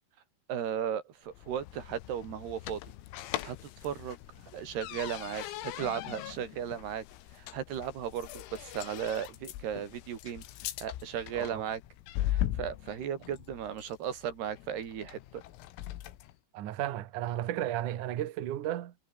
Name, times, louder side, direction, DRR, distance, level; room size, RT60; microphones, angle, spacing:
voice 1, 0.5-2.8 3.4-3.6 3.8-4.2 4.5-7.0 7.4-10.4 10.8-11.8 12.3-15.4, right 9 dB, 55° right, 4.6 m, -36 dB
sound 1, 1.3-16.4, left 14 dB, 90° left, 4.5 m, -40 dB
voice 2, 11.3-11.6 16.5-19.0, right 12 dB, 80° right, 1.8 m, -34 dB
omnidirectional pair, 6.0 m